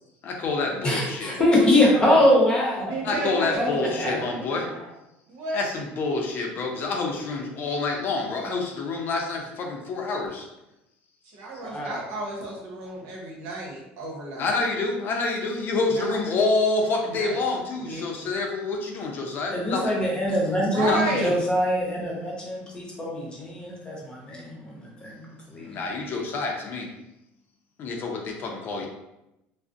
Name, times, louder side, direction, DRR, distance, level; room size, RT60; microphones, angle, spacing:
voice 1, 0.2-1.4 3.0-4.7 5.5-10.5 14.4-19.9 20.7-21.0 25.6-26.9 27.8-28.9, left 3 dB, 45° left, 1 dB, 0.5 m, -27 dB
voice 2, 0.8-3.0 3.5-4.2 11.7-12.0 19.5-25.2 25.5-25.8, left 1 dB, 20° left, -3 dB, 0.8 m, -23 dB
voice 3, 1.5-2.3 2.8-4.9 5.3-5.7 11.2-14.6 15.9-16.1 17.1-17.4 17.8-18.0 20.5-21.3, right 1 dB, 75° right, -3 dB, 0.8 m, -33 dB
2.4 x 2.0 x 2.5 m, 0.90 s
supercardioid pair, 110°, 5 cm